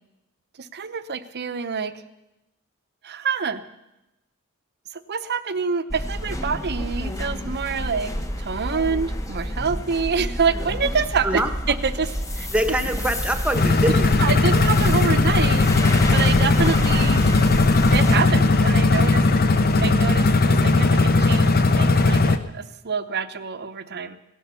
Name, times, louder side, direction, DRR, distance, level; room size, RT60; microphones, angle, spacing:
voice 1, 0.6-2.0 3.0-3.6 4.9-11.4 11.7-12.5 14.2-17.2 17.9-19.3 19.8-24.2, right 5 dB, 50° right, 11 dB, 0.8 m, -27 dB
sound 1, 5.9-18.2, equal, 15° left, 1.1 m, -29 dB
voice 2, 11.2-11.8 12.5-14.2, right 1 dB, 5° right, 7 dB, 1.3 m, -24 dB
sound 2, 13.5-22.4, left 3 dB, 45° left, 0.8 m, -18 dB
17.0 x 11.0 x 6.9 m, 0.94 s
head